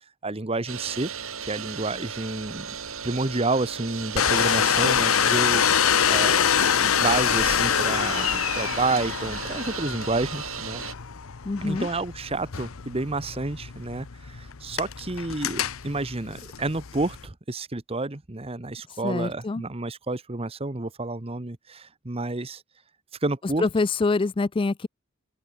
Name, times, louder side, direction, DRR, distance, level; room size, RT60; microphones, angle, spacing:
voice 1, 0.2-1.1 1.4-2.7 3.0-6.4 6.8-10.9 11.6-22.6 23.2-23.7, right 2 dB, 30° right, 1.1 m, -30 dB
sound 1, 0.7-10.9, right 7 dB, 85° right, 6.2 m, -36 dB
Domestic sounds home sounds, 4.1-17.3, left 8 dB, 85° left, 0.9 m, -25 dB
voice 2, 11.4-11.9 19.0-19.6 23.6-24.9, left 3 dB, 25° left, 0.4 m, -25 dB
open air
head